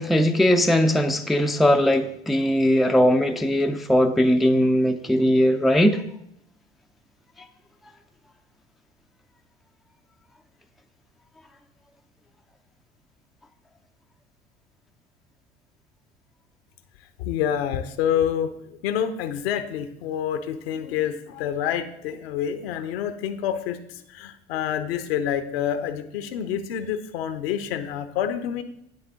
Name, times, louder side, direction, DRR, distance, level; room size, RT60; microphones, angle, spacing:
voice 1, 0.0-6.0, equal, ahead, 0.4 m, -19 dB
voice 2, 17.2-28.6, left 9 dB, 65° left, 0.8 m, -27 dB
9.0 x 7.9 x 3.6 m
figure-of-eight pair, 65°, 32 cm